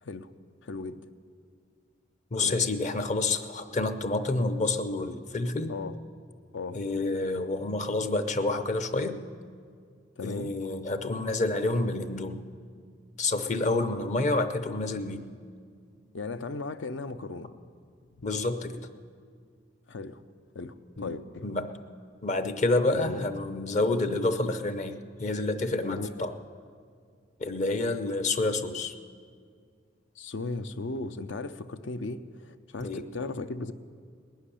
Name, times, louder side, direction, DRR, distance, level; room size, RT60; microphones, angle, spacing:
voice 1, 0.0-0.3 0.6-1.0 2.4-2.7 5.7-6.0 6.5-6.8 10.2-10.5 16.1-17.5 19.9-20.2 20.5-21.4 22.9-23.3 25.8-26.3 30.2-33.7, left 3 dB, 75° left, 11 dB, 0.6 m, -36 dB
voice 2, 2.3-5.7 6.7-9.2 10.2-12.4 13.2-15.2 18.2-18.8 21.0-21.2 21.4-21.7 22.2-26.3 27.4-28.9 32.8-33.0, left 2 dB, 40° left, 8 dB, 0.7 m, -28 dB
19.0 x 6.5 x 10.0 m, 2.1 s
head